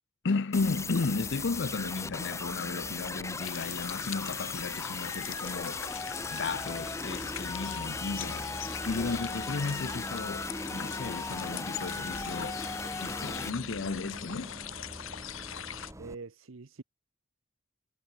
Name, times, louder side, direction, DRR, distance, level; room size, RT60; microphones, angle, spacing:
voice 1, 0.2-5.8 6.3-8.5 8.8-14.6, left 4 dB, 60° left, 0.6 m, -34 dB
sound 1, 0.5-13.5, left 4 dB, 15° left, 0.7 m, -38 dB
Bus, 0.5-16.1, equal, 15° right, 3.3 m, -45 dB
sound 2, 3.4-15.9, left 10 dB, 75° left, 1.2 m, -42 dB
voice 2, 16.0-16.8, right 4 dB, 70° right, 0.8 m, -44 dB
head